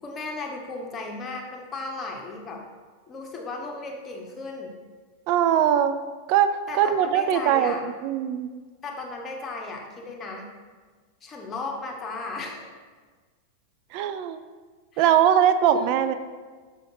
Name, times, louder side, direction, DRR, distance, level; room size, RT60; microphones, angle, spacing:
voice 1, 0.0-2.6 3.1-4.7 6.7-7.8 8.8-10.5 11.2-12.7 14.9-15.0 15.7-15.9, left 3 dB, 20° left, 0 dB, 1.1 m, -35 dB
voice 2, 5.3-5.9 6.3-6.5 6.8-8.5 13.9-14.4 15.0-16.1, right 9 dB, 45° right, 11 dB, 0.4 m, -21 dB
6.9 x 5.9 x 2.7 m, 1.4 s
figure-of-eight pair, 90°, 0 cm